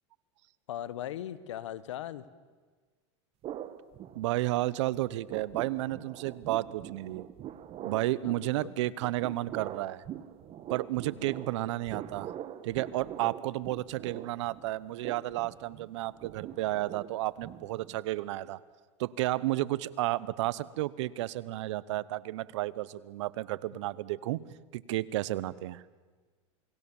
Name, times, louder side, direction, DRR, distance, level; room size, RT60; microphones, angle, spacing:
voice 1, 0.7-2.2 8.2-8.3 8.6-8.7 11.1-11.3, left 11 dB, 90° left, 16 dB, 1.2 m, -39 dB
sound 1, 3.4-4.7 4.9-18.1, right 11 dB, 40° right, 1.3 m, -44 dB
voice 2, 4.1-7.3 7.8-10.0 10.7-12.3 12.6-18.6 19.0-24.4 24.7-25.8, right 16 dB, 75° right, 19 dB, 0.9 m, -32 dB
28.0 x 20.0 x 7.1 m, 1.4 s
supercardioid pair, 115°, 15 cm